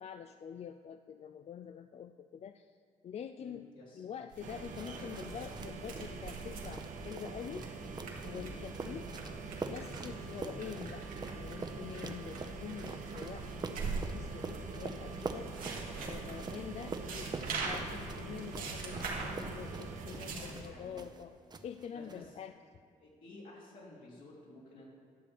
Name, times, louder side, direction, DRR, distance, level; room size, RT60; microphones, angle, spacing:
voice 1, 0.0-2.7 3.0-3.7 3.9-7.7 8.2-9.1 9.7-13.4 13.8-15.5 16.1-17.3 17.6-21.3 21.6-22.5, left 8 dB, 45° left, 9 dB, 0.4 m, -46 dB
voice 2, 3.4-4.0 4.8-5.3 8.4-8.6 15.9-16.2 20.3-21.1 21.9-22.4 23.0-24.9, left 2 dB, 75° left, -4 dB, 3.0 m, -53 dB
sound 1, 4.3-20.6, right 3 dB, 75° right, 1.7 m, -43 dB
sound 2, 4.4-20.4, right 4 dB, 60° right, 1.0 m, -46 dB
sound 3, 4.5-21.2 21.5-22.2, right 3 dB, 30° right, 0.7 m, -46 dB
11.5 x 6.7 x 5.2 m, 2.1 s
cardioid pair, 75°, 15 cm